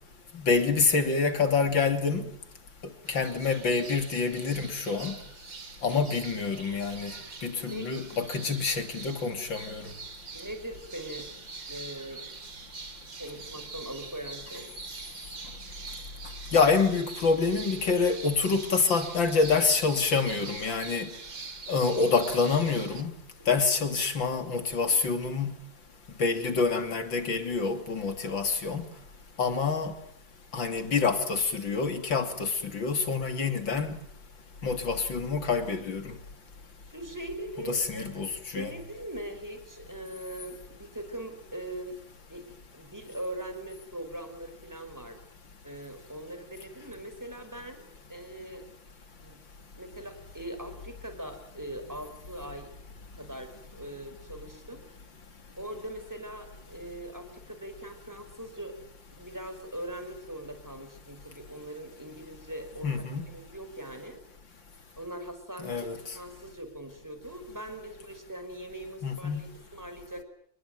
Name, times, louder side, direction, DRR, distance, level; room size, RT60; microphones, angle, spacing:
voice 1, 0.3-2.3 2.8-5.2 5.8-7.1 7.4-9.9 16.5-21.1 21.7-23.1 23.5-25.6 26.2-28.9 29.4-30.0 30.5-33.9 34.6-36.2 37.6-38.7 62.8-63.2 65.6-66.2 69.0-69.4, left 4 dB, 75° left, 3.7 m, -27 dB
sound 1, 3.1-23.0, right 4 dB, 45° right, 2.5 m, -44 dB
voice 2, 7.5-7.9 10.3-11.3 11.7-12.2 13.2-14.7 23.6-23.7 36.9-38.3 38.5-42.0 42.3-42.5 42.7-45.2 45.6-47.8 48.1-48.6 49.2-49.4 49.7-52.7 53.2-54.8 55.6-58.8 59.1-64.2 65.0-70.2, right 1 dB, 10° right, 5.5 m, -41 dB
29.0 x 21.0 x 9.4 m
omnidirectional pair, 2.1 m